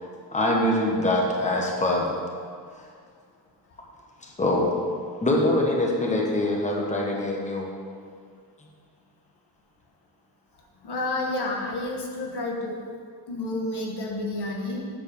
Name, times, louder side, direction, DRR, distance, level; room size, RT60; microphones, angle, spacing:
voice 1, 0.3-2.1 4.2-4.7 5.2-7.7, left 1 dB, 20° left, -1 dB, 1.2 m, -24 dB
voice 2, 10.8-12.8 13.3-14.9, left 2 dB, 75° left, 0 dB, 1.3 m, -30 dB
7.5 x 5.0 x 6.9 m, 2.1 s
wide cardioid pair, 115°, 40 cm